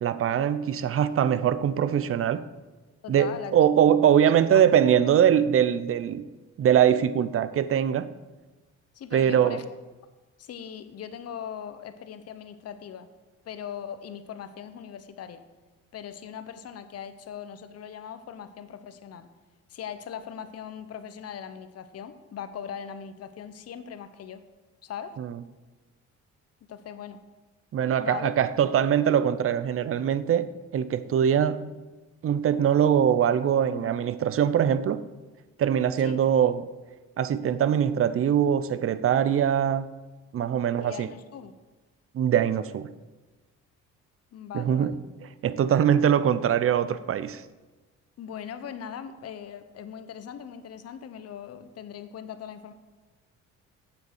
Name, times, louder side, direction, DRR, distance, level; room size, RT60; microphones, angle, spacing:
voice 1, 0.0-2.5 3.1-6.3 6.6-8.1 9.1-9.6 25.2-25.3 27.7-31.7 32.2-35.0 35.6-36.7 37.2-39.9 40.3-41.1 42.1-42.9 44.5-44.9 45.4-47.4, right 9 dB, 50° right, 15 dB, 0.5 m, -22 dB
voice 2, 3.0-4.0 4.8-5.0 8.9-9.6 10.4-13.1 13.4-15.4 15.9-19.3 19.7-24.4 24.8-25.1 26.7-27.2 28.0-28.4 33.7-34.1 36.0-36.2 40.8-41.5 44.3-45.0 48.2-52.7, left 8 dB, 55° left, 11 dB, 0.8 m, -40 dB
8.0 x 7.0 x 4.5 m, 1.2 s
cardioid pair, 90°, 30 cm